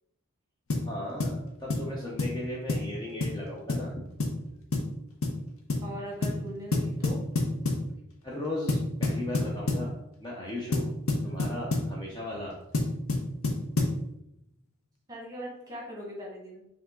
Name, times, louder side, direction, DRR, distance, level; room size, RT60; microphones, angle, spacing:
sound 1, 0.7-0.9 1.2-1.4 1.7-1.9 2.2-2.4 2.7-2.9 3.2-3.4 3.7-3.9 4.2-4.4 4.7-4.9 5.2-5.4 5.7-5.9 6.2-6.4 6.7-7.9 8.7-9.9 10.7-11.9 12.7-14.0, left 2 dB, 85° left, 0.8 m, -28 dB
voice 1, 0.8-4.1 4.5-4.6 8.2-10.9 11.2-12.6, left 1 dB, 20° left, -3 dB, 0.6 m, -37 dB
voice 2, 5.8-7.2 15.1-16.6, equal, 15° right, -3 dB, 1.3 m, -40 dB
4.8 x 2.9 x 3.7 m, 0.81 s
head